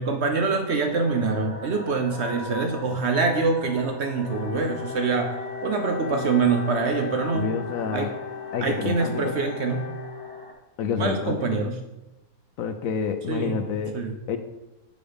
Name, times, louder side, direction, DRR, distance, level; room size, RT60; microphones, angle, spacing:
voice 1, 0.0-7.6 7.9-8.1 8.6-9.9 11.0-11.8 13.3-13.6 13.9-14.2, right 4 dB, 55° right, 4 dB, 0.8 m, -25 dB
sound 1, 0.9-10.5, left 2 dB, 15° left, 1.1 m, -41 dB
Wind instrument woodwind instrument, 4.3-10.6, left 7 dB, 90° left, 1.3 m, -37 dB
voice 2, 7.2-8.1 8.5-9.3 10.8-11.6 12.6-13.9 14.3-14.4, left 6 dB, 70° left, 8 dB, 0.9 m, -28 dB
6.3 x 5.0 x 5.0 m, 0.99 s
omnidirectional pair, 1.6 m